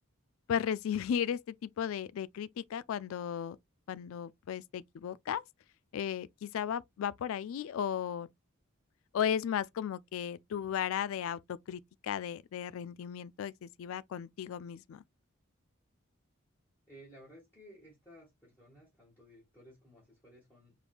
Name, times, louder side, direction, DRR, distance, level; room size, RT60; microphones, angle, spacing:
voice 1, 0.5-3.6 3.9-5.4 5.9-8.3 9.1-15.0, left 8 dB, 70° left, 0.3 m, -35 dB
voice 2, 16.9-20.7, equal, 10° left, 1.7 m, -56 dB
4.8 x 3.4 x 2.4 m
head